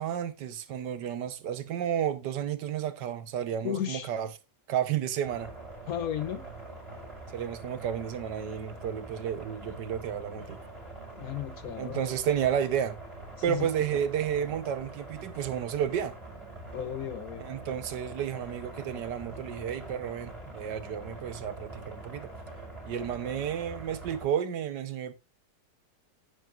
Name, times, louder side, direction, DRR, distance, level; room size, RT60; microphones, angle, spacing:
voice 1, 0.0-4.3 4.7-5.5 7.3-10.6 11.7-13.0 13.4-16.1 17.4-22.3 22.8-25.1, right 9 dB, 70° right, 1.5 m, -32 dB
voice 2, 3.6-4.1 5.9-6.5 11.2-12.0 13.5-14.0 16.7-17.4, left 10 dB, 65° left, 1.0 m, -34 dB
sound 1, 5.2-24.2, right 2 dB, 20° right, 6.1 m, -44 dB
10.5 x 9.1 x 2.4 m
omnidirectional pair, 1.9 m